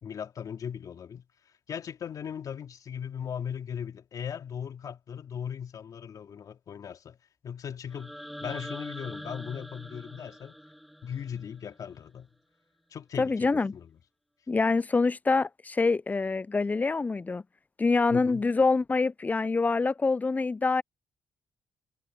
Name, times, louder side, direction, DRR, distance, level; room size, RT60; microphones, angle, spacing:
voice 1, 0.0-1.2 1.7-7.2 7.4-8.1 8.4-10.6 11.0-12.3 12.9-14.0 18.1-18.4, left 8 dB, 60° left, 2.8 m, -38 dB
sound 1, 7.9-11.9, equal, ahead, 3.6 m, -43 dB
voice 2, 13.2-13.7 14.5-17.4 17.8-20.8, left 3 dB, 25° left, 0.4 m, -25 dB
supercardioid pair, 55°, 7 cm